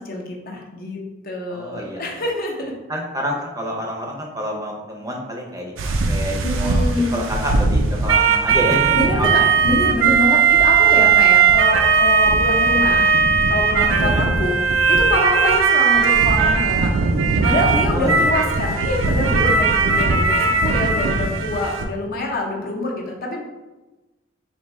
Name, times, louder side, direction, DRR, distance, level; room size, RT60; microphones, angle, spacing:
voice 1, 0.0-2.7 6.4-7.2 8.9-13.1 13.5-14.6 14.9-16.9 17.4-23.4, left 1 dB, 50° left, 0 dB, 0.7 m, -25 dB
voice 2, 1.5-2.2 2.9-9.5 10.8-11.2 14.0-14.2 17.9-18.1 18.4-18.5, equal, 20° right, -1 dB, 0.6 m, -28 dB
sound 1, 5.8-21.8, right 5 dB, 80° right, 0.5 m, -18 dB
3.4 x 2.6 x 4.1 m, 1.1 s
head